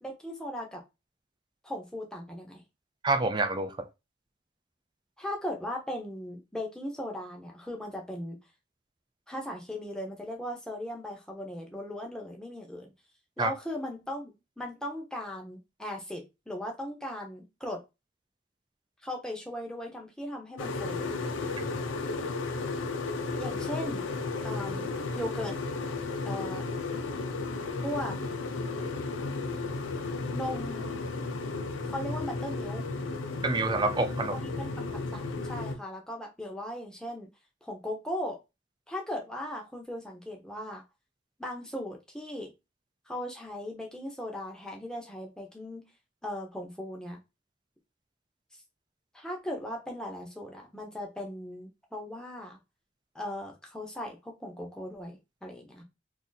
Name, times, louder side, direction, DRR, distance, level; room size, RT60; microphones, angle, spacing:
voice 1, 0.0-0.8 1.6-2.6 5.2-8.4 9.3-12.9 13.4-14.3 14.6-17.8 19.0-21.1 23.4-24.1 24.4-25.5 26.2-26.7 27.8-28.2 30.3-31.1 31.8-32.9 34.3-37.3 37.6-38.4 38.9-40.8 41.4-42.5 43.1-45.8 46.2-47.2 49.1-52.6 53.1-55.8, left 1 dB, 5° left, 0.8 m, -38 dB
voice 2, 3.0-3.9 13.4-13.5 21.6-21.7 33.4-34.5, right 3 dB, 25° right, 0.4 m, -28 dB
sound 1, 20.6-35.7, left 3 dB, 80° left, 0.5 m, -34 dB
2.7 x 2.6 x 3.9 m
head